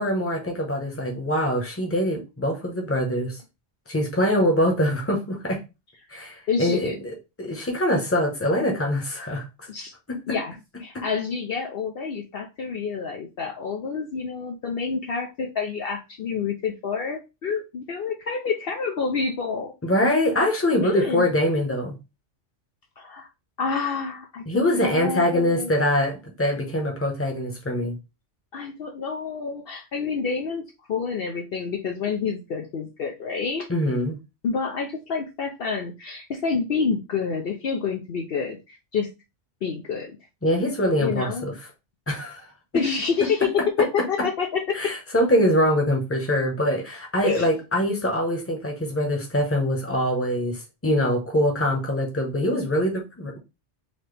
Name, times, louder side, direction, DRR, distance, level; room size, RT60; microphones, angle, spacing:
voice 1, 0.0-3.4 3.9-5.6 6.1-9.7 19.8-21.9 24.5-28.0 33.7-34.2 40.4-41.5 42.1-42.4 44.7-53.4, equal, 10° left, 0.9 m, -23 dB
voice 2, 6.5-6.9 9.7-9.9 10.3-10.5 10.8-19.7 20.8-21.2 23.0-23.3 23.6-25.7 28.5-30.6 30.9-33.7 34.4-39.1 39.6-40.1 41.0-41.5 42.7-43.5 43.8-44.9 47.2-47.5, left 5 dB, 60° left, 0.8 m, -28 dB
4.2 x 2.8 x 3.3 m
omnidirectional pair, 1.2 m